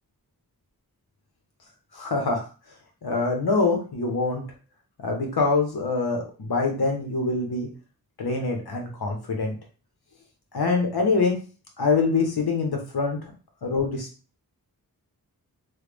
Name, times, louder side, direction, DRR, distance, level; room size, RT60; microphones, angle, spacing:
voice 1, 1.9-2.4 3.0-4.4 5.0-7.7 8.2-9.6 10.5-11.4 11.8-13.2 13.6-14.1, left 3 dB, 85° left, 2 dB, 1.0 m, -24 dB
3.2 x 2.3 x 3.4 m, 0.35 s
wide cardioid pair, 70°, 37 cm